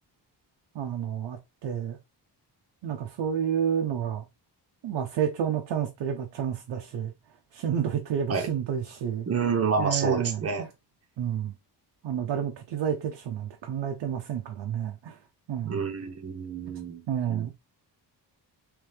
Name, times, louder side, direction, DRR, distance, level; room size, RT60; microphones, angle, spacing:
voice 1, 0.7-2.0 2.8-4.2 4.8-7.1 7.5-9.3 9.8-10.7 11.2-11.5 12.0-15.2 15.5-15.8 17.1-17.5, right 8 dB, 80° right, 0.7 m, -30 dB
voice 2, 9.3-10.7 15.6-17.5, right 5 dB, 35° right, 0.9 m, -29 dB
3.3 x 3.3 x 3.2 m
wide cardioid pair, 160°, 43 cm